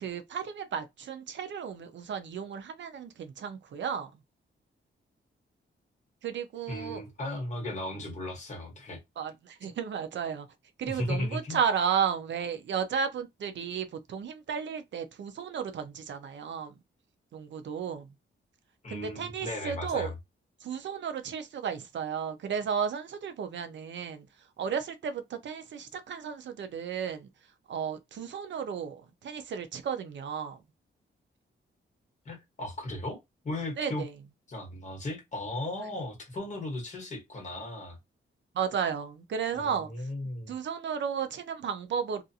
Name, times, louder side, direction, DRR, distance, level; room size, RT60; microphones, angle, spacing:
voice 1, 0.0-4.1 6.2-7.0 9.2-10.5 10.8-16.8 17.3-18.1 18.9-20.1 20.6-27.3 27.7-30.6 33.8-34.1 35.8-35.9 38.5-40.1 40.5-42.2, right 7 dB, 60° right, 0.5 m, -33 dB
voice 2, 6.7-9.0 10.9-11.6 18.8-20.1 32.2-33.2 33.4-34.0 34.5-38.0 39.5-40.6, left 1 dB, 35° left, 1.2 m, -36 dB
2.5 x 2.4 x 2.6 m
wide cardioid pair, 175°, 21 cm